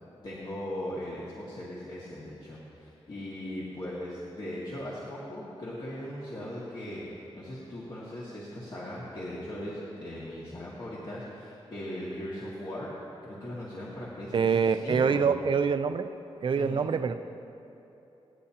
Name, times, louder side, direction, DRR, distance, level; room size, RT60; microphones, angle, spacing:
voice 1, 0.2-12.9 13.2-15.2 16.6-16.9, left 1 dB, 50° left, -7 dB, 1.9 m, -39 dB
voice 2, 14.3-16.1 16.4-17.1, right 6 dB, 55° right, 10 dB, 0.5 m, -25 dB
26.5 x 9.8 x 2.9 m, 2.9 s
wide cardioid pair, 155°, 10 cm